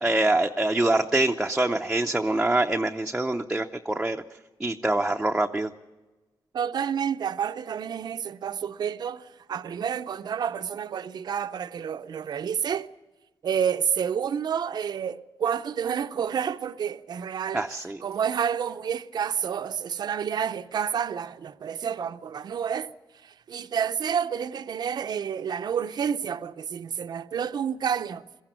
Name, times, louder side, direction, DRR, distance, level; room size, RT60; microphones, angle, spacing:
voice 1, 0.0-4.2 4.6-5.7 17.5-18.0, right 2 dB, 10° right, 0.6 m, -25 dB
voice 2, 6.5-12.9 13.4-17.7 18.0-22.9 23.2-28.3, right 8 dB, 55° right, 0.6 m, -29 dB
22.0 x 15.0 x 9.0 m
wide cardioid pair, 130°, 9 cm